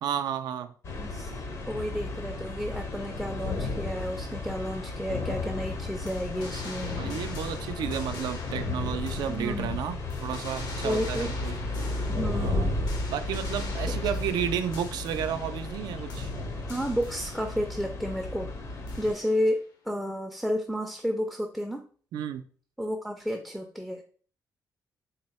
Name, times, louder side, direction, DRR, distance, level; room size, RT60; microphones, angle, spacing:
voice 1, 0.0-0.7 7.0-11.6 12.3-12.7 13.1-16.3 22.1-22.4, right 9 dB, 90° right, 9 dB, 0.4 m, -32 dB
sound 1, 0.8-19.1, left 2 dB, 45° left, 0.6 m, -34 dB
voice 2, 1.0-1.3 1.7-7.0 9.3-9.8 10.8-11.3 12.1-12.7 16.7-18.5 19.0-21.8 22.8-24.0, equal, ahead, 4 dB, 0.4 m, -31 dB
sound 2, 6.1-9.8 10.1-15.8 16.1-17.7 18.9-19.6, left 3 dB, 75° left, 0.9 m, -44 dB
3.9 x 2.0 x 4.1 m, 0.42 s
cardioid pair, 145°, 7 cm